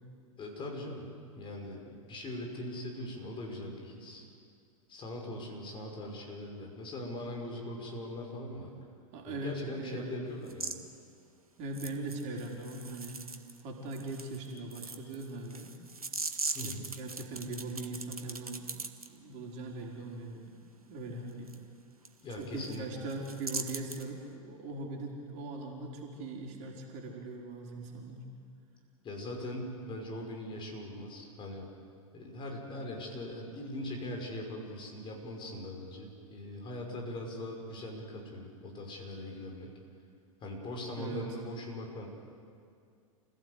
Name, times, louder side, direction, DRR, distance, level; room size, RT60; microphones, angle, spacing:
voice 1, 0.4-1.1 1.3-4.3 4.9-8.7 9.3-10.8 16.5-16.9 22.2-23.0 29.0-31.7 32.1-39.7 40.4-42.1, left 1 dB, 25° left, 1 dB, 5.7 m, -41 dB
voice 2, 9.1-10.3 11.6-13.2 13.6-15.7 16.9-18.7 19.1-20.6 20.9-21.6 22.3-28.2 41.0-41.4, right 2 dB, 40° right, -1 dB, 4.7 m, -40 dB
sound 1, 10.5-10.8 11.7-13.6 13.9-19.1 21.5-21.6 22.0-22.1 22.4-22.8 23.1-24.1, right 4 dB, 85° right, 1.6 m, -40 dB
28.5 x 16.5 x 8.3 m, 2.3 s
figure-of-eight pair, 95°, 18 cm